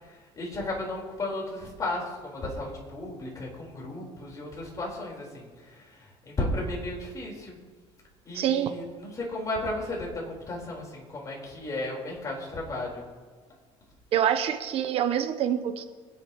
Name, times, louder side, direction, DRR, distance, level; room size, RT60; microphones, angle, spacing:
voice 1, 0.4-7.6 8.3-13.0, left 2 dB, 30° left, -2 dB, 4.6 m, -34 dB
voice 2, 8.3-8.7 14.1-15.8, right 9 dB, 60° right, 8 dB, 1.0 m, -26 dB
25.5 x 10.5 x 3.2 m, 1.5 s
cardioid pair, 135°, 11 cm